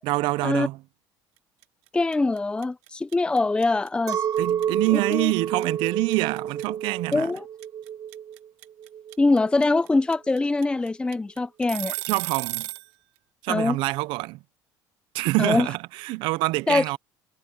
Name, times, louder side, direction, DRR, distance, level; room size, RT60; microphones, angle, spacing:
voice 1, 0.0-0.8 4.4-7.3 12.1-12.7 13.4-14.4 15.1-17.0, right 22 dB, 75° right, 0.6 m, -26 dB
sound 1, 1.6-1.9 2.1-12.9, right 19 dB, 90° right, 1.3 m, -34 dB
voice 2, 1.9-4.2 4.9-5.3 7.1-7.4 9.2-11.9 13.5-13.8 15.4-15.7 16.7-16.8, left 3 dB, 10° left, 0.7 m, -23 dB
Chink clink, 4.1-9.5, right 9 dB, 45° right, 1.4 m, -29 dB
supercardioid pair, 110°, 8 cm